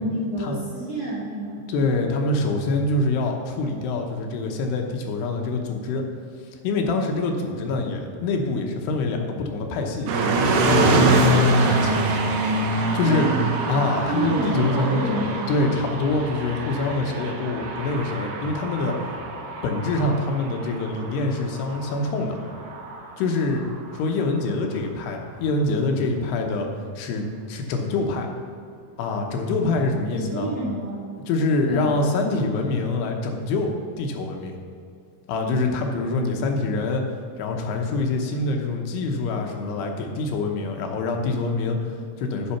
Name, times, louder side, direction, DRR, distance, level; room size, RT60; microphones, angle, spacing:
voice 1, 0.0-1.6 13.0-13.5 14.1-15.4 30.1-31.1 31.6-32.0, right 1 dB, 30° right, -8 dB, 2.2 m, -28 dB
voice 2, 1.7-6.0 6.6-12.1 12.9-13.3 13.7-15.2 15.5-19.2 19.6-22.4 23.2-26.7 27.0-28.3 29.0-30.5 31.3-34.6 35.3-37.0 37.4-42.6, left 3 dB, 85° left, 3 dB, 3.0 m, -25 dB
sound 1, 10.1-24.1, right 2 dB, 90° right, 1.6 m, -25 dB
8.4 x 6.2 x 5.7 m, 2.4 s
omnidirectional pair, 4.6 m